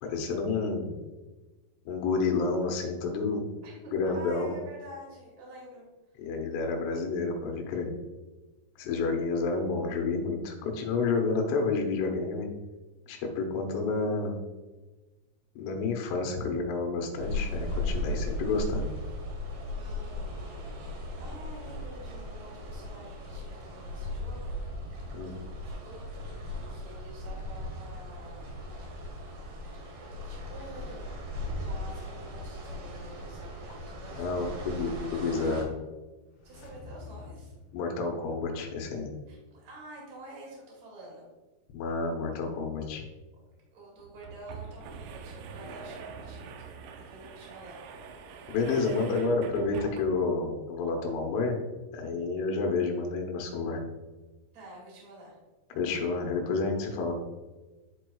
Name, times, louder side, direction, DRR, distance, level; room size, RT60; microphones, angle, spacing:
voice 1, 0.0-0.9 1.9-3.5 3.9-4.5 6.2-7.9 8.8-12.5 13.1-14.4 15.6-18.9 25.1-25.3 34.2-35.7 37.7-39.1 41.7-43.0 48.5-51.6 51.9-53.8 55.7-57.2, left 4 dB, 90° left, 2 dB, 3.6 m, -30 dB
voice 2, 3.6-5.8 19.7-20.2 21.2-24.6 25.6-26.3 26.7-28.6 29.8-30.0 30.2-31.2 31.6-35.1 36.4-37.5 39.3-41.3 43.7-47.8 54.5-55.4, right 1 dB, 40° right, -4 dB, 2.6 m, -48 dB
sound 1, 17.2-35.6, left 1 dB, 65° right, 3.2 m, -37 dB
sound 2, 36.2-39.1 39.4-39.5, left 4 dB, 70° left, 2.1 m, -49 dB
sound 3, 42.8-42.9 43.2-43.3 44.0-50.4, right 5 dB, 90° right, 3.2 m, -44 dB
12.0 x 4.6 x 2.3 m, 1.2 s
omnidirectional pair, 5.5 m